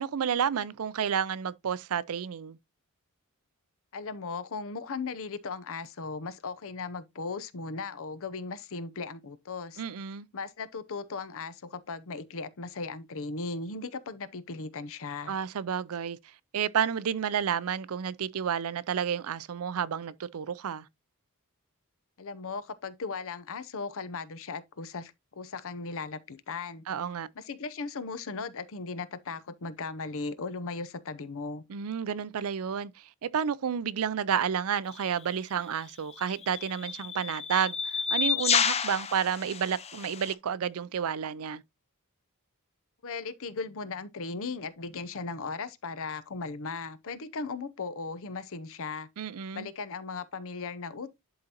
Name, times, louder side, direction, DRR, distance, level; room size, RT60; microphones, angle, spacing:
voice 1, 0.0-2.6 9.8-10.3 15.3-16.2 16.5-20.9 26.9-27.3 31.7-41.6 49.2-49.7, right 7 dB, 70° right, 0.5 m, -31 dB
voice 2, 3.9-9.8 10.3-15.3 22.2-26.9 27.4-31.6 43.0-49.1 49.5-51.1, left 4 dB, 65° left, 0.7 m, -37 dB
sound 1, 34.9-35.1 36.1-40.3, left 6 dB, 30° left, 0.6 m, -30 dB
11.0 x 3.8 x 2.9 m
head